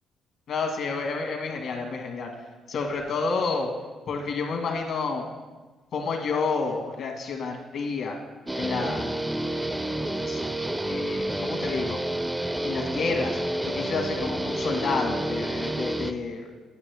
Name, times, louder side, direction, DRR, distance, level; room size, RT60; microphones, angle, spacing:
voice 1, 0.5-2.3 2.7-3.7 4.1-5.3 5.9-8.1 8.5-9.1 10.2-10.4 10.9-12.0 12.6-16.5, left 4 dB, 70° left, 2 dB, 1.4 m, -29 dB
Guitar, 8.5-16.1, right 1 dB, 10° right, 0.4 m, -29 dB
9.8 x 6.0 x 3.4 m, 1.3 s
cardioid pair, 90°, 0 cm